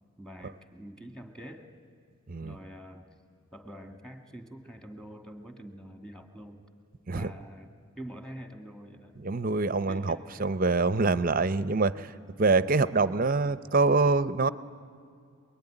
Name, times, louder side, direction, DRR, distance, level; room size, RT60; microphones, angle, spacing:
voice 1, 0.2-1.7 2.4-3.1 3.5-6.6 7.1-9.2 9.9-10.5, equal, 5° left, 5 dB, 1.6 m, -45 dB
voice 2, 9.2-12.1 12.4-14.5, right 3 dB, 40° right, 15 dB, 0.6 m, -25 dB
26.5 x 21.5 x 9.9 m, 2.4 s
head